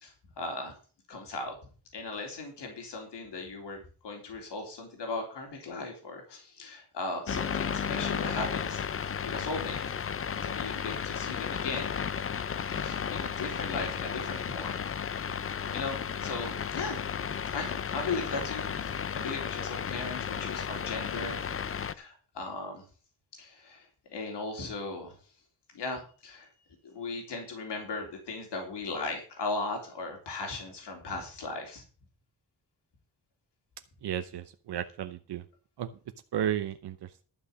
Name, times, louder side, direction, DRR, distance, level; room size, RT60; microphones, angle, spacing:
voice 1, 0.0-0.7 1.1-1.6 1.9-9.8 10.4-11.9 12.8-14.7 15.7-17.0 17.5-21.4 21.9-22.8 23.3-25.2 25.7-26.5 26.8-31.8, left 3 dB, 90° left, 2 dB, 3.5 m, -37 dB
sound 1, 7.3-21.9, left 7 dB, 35° left, 0.5 m, -33 dB
voice 2, 34.0-35.4 35.8-35.9 36.3-37.0, right 10 dB, 75° right, 9 dB, 0.8 m, -33 dB
12.5 x 5.6 x 8.1 m, 0.39 s
wide cardioid pair, 170°, 41 cm